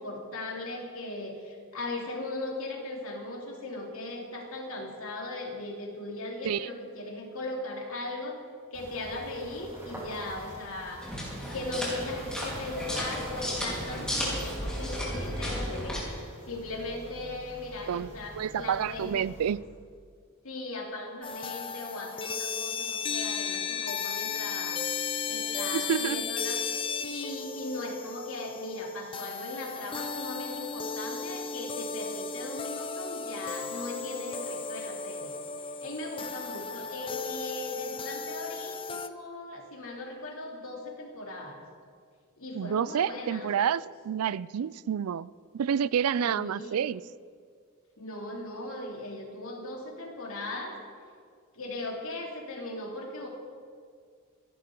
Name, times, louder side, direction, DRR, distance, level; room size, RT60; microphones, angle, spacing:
voice 1, 0.0-8.4 8.7-11.0 11.5-16.0 16.5-19.2 20.4-24.8 25.3-26.6 27.0-35.3 35.8-41.6 42.4-43.5 46.2-46.8 48.0-50.8 51.5-53.3, left 2 dB, 65° left, 2.7 m, -38 dB
sound 1, 8.7-19.5, equal, 10° right, 3.6 m, -44 dB
sound 2, 11.0-16.0, equal, 5° left, 3.8 m, -34 dB
voice 2, 18.4-19.6 25.7-26.2 42.5-45.3 45.5-47.0, right 8 dB, 80° right, 0.4 m, -29 dB
sound 3, 21.2-39.1, left 5 dB, 25° left, 0.5 m, -35 dB
27.0 x 11.0 x 3.8 m
head